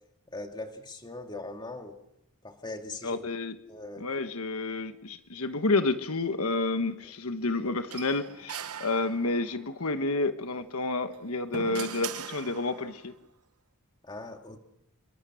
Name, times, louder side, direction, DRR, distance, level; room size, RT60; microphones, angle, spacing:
voice 1, 0.3-2.0 2.4-3.2 3.7-4.1 14.0-14.6, left 2 dB, 20° left, 4 dB, 2.6 m, -40 dB
voice 2, 3.0-3.5 4.0-13.1, left 3 dB, 80° left, 9 dB, 1.3 m, -30 dB
sound 1, 7.9-9.6 11.0-13.0, right 7 dB, 90° right, 1.1 m, -40 dB
29.0 x 23.0 x 6.4 m, 0.80 s
head